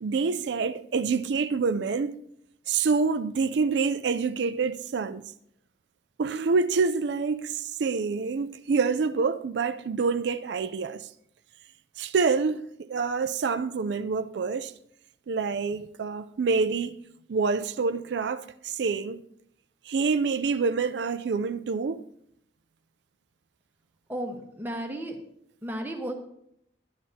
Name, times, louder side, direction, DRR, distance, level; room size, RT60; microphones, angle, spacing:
voice 1, 0.0-2.2 2.7-5.2 6.2-11.1 12.0-14.7 15.3-17.0 17.3-19.2 19.9-22.0, right 4 dB, 70° right, 0.4 m, -27 dB
voice 2, 24.1-25.2 25.6-26.1, right 1 dB, 10° right, 1.1 m, -33 dB
12.0 x 10.0 x 2.8 m
head